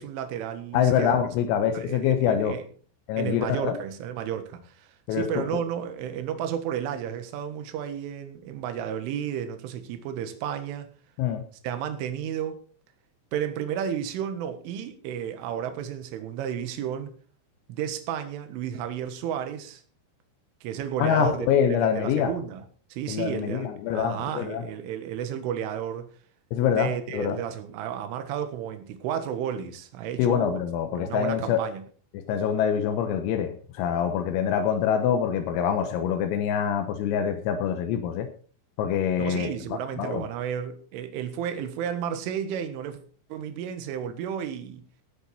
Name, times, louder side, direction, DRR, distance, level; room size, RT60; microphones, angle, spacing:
voice 1, 0.0-1.2 1.7-2.6 3.2-10.9 11.6-12.6 13.3-17.1 17.7-19.8 20.6-22.6 22.9-26.1 26.7-30.6 31.0-31.8 39.2-43.0 43.3-44.8, right 9 dB, 75° right, 3.9 m, -32 dB
voice 2, 0.7-2.6 3.1-3.7 5.1-5.4 11.2-11.4 21.0-22.4 23.1-24.6 26.5-27.4 30.2-31.6 32.1-38.3 38.8-39.5 40.0-40.2, left 8 dB, 85° left, 3.9 m, -25 dB
19.0 x 8.2 x 4.4 m
omnidirectional pair, 5.9 m